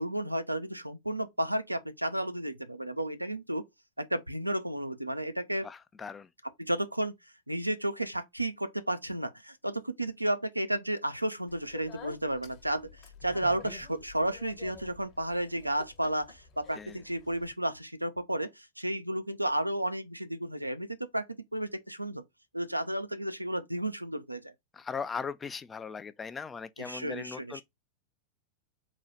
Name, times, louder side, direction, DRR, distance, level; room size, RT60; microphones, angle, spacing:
voice 1, 0.0-3.6 4.0-5.7 6.6-7.1 7.5-21.3 21.5-22.2 22.5-24.5 26.9-27.6, right 1 dB, 85° right, 0.4 m, -32 dB
voice 2, 5.6-6.3 16.7-17.0 24.7-27.6, left 5 dB, 15° left, 0.3 m, -39 dB
Speech, 11.5-17.5, left 6 dB, 35° left, 1.0 m, -50 dB
3.9 x 2.3 x 3.0 m
figure-of-eight pair, 90°, 0 cm